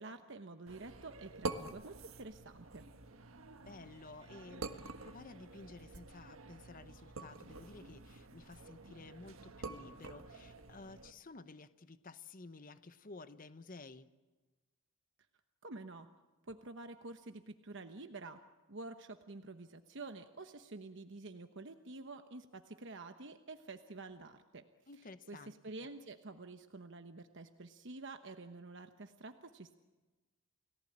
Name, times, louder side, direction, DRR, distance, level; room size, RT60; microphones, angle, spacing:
voice 1, 0.0-2.8 15.6-16.1 16.4-18.4 18.7-24.6 25.3-29.7, right 3 dB, 60° right, 7 dB, 1.1 m, -49 dB
sound 1, 0.7-11.1, right 3 dB, 75° right, 1.5 m, -48 dB
voice 2, 3.7-14.1 24.9-25.9, left 3 dB, 40° left, 12 dB, 0.9 m, -53 dB
30.0 x 18.5 x 8.7 m, 1.2 s
head